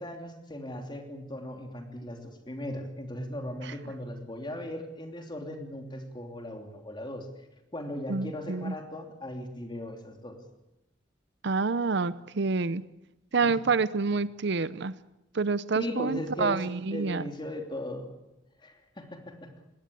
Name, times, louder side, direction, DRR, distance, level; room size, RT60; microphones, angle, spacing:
voice 1, 0.0-7.3 7.7-10.4 13.4-13.6 15.7-16.6 16.9-18.1 18.6-19.5, left 1 dB, 25° left, 4 dB, 2.9 m, -38 dB
voice 2, 8.1-8.7 11.4-12.8 13.3-14.9 15.3-17.2, right 4 dB, 65° right, 16 dB, 0.7 m, -28 dB
21.0 x 17.0 x 8.4 m, 0.94 s
head